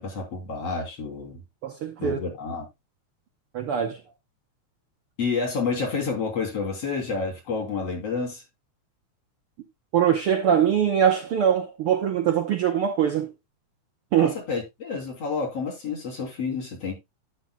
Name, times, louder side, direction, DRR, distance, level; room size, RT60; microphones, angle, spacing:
voice 1, 0.0-1.4 2.0-2.7 5.2-8.4 14.1-17.0, left 4 dB, 50° left, 4.1 m, -29 dB
voice 2, 1.6-2.2 3.5-4.0 9.9-13.3 14.1-14.4, right 9 dB, 65° right, 1.5 m, -22 dB
11.5 x 9.1 x 2.3 m
omnidirectional pair, 3.5 m